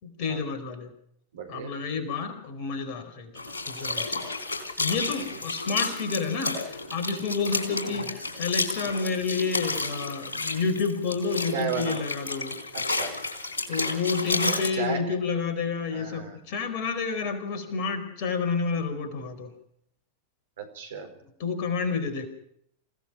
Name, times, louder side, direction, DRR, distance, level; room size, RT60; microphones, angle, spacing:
voice 1, 0.0-0.9 1.5-4.3 4.8-12.6 13.7-19.5 21.4-22.3, left 5 dB, 45° left, 7 dB, 4.6 m, -30 dB
voice 2, 1.3-1.7 5.3-5.4 7.9-8.1 11.5-12.0 12.7-13.1 14.5-15.1 15.9-16.4 20.6-21.1, right 6 dB, 60° right, 5 dB, 4.6 m, -34 dB
sound 1, 3.3-14.7, left 3 dB, 75° left, 3.8 m, -31 dB
28.0 x 17.0 x 6.2 m, 0.73 s
figure-of-eight pair, 90°, 0 cm